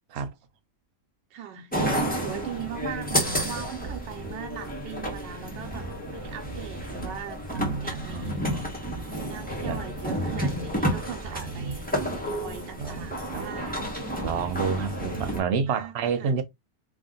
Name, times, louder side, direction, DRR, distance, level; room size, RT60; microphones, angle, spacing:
voice 1, 1.3-8.4 9.1-14.2 15.6-15.9 16.2-16.4, right 8 dB, 85° right, 1.3 m, -40 dB
sound 1, 1.7-15.4, equal, 5° left, 1.0 m, -31 dB
voice 2, 7.5-8.7 9.6-9.8 11.2-11.8 12.8-13.4 14.2-16.4, right 6 dB, 65° right, 0.6 m, -30 dB
3.5 x 2.7 x 3.7 m
omnidirectional pair, 1.9 m